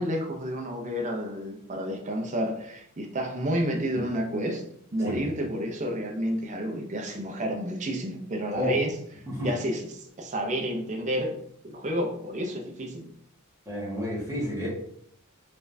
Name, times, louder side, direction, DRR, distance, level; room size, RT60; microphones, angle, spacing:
voice 1, 0.0-4.6 4.9-8.9 9.4-11.3 11.6-13.1, equal, 35° right, 2 dB, 0.7 m, -30 dB
voice 2, 13.6-14.7, equal, 15° right, -7 dB, 1.6 m, -30 dB
4.2 x 3.4 x 2.7 m, 0.69 s
head